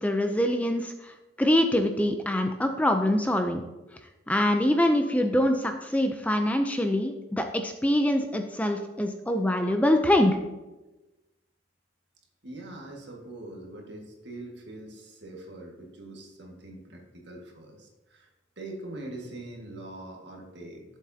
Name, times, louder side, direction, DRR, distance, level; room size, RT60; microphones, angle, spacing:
voice 1, 0.0-3.6 4.3-10.4, left 1 dB, 10° left, 5 dB, 0.4 m, -24 dB
voice 2, 12.4-18.3 18.6-20.8, right 2 dB, 65° right, 0 dB, 1.8 m, -43 dB
11.5 x 7.3 x 2.8 m, 1.1 s
head